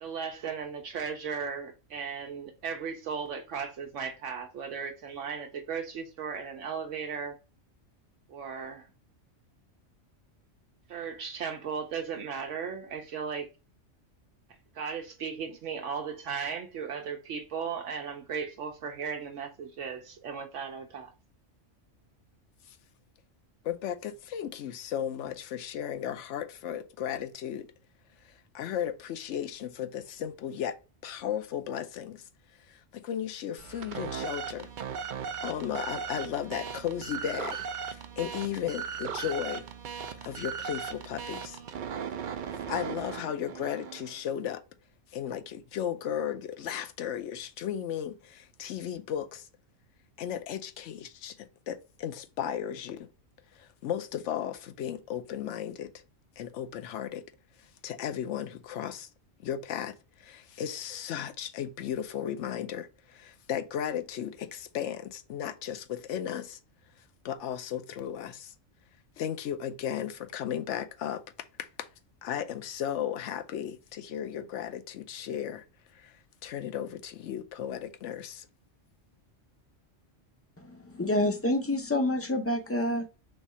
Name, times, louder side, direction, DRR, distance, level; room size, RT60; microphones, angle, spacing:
voice 1, 0.0-7.4 8.3-8.9 10.9-13.5 14.7-21.1, right 6 dB, 75° right, 1.0 m, -36 dB
voice 2, 23.6-27.7 28.2-30.8 31.0-32.2 32.7-34.7 35.4-39.7 40.2-41.6 42.7-44.6 45.1-49.5 50.2-53.1 53.5-55.9 56.4-57.2 57.8-59.1 59.4-66.6 67.2-68.5 69.2-71.2 71.6-71.9 72.2-75.6 75.9-76.2 76.4-78.5, left 9 dB, 70° left, 0.9 m, -35 dB
sound 1, 33.6-44.2, right 7 dB, 55° right, 0.5 m, -38 dB
voice 3, 80.6-83.1, left 1 dB, 20° left, 0.4 m, -28 dB
3.5 x 3.4 x 4.1 m
omnidirectional pair, 1.3 m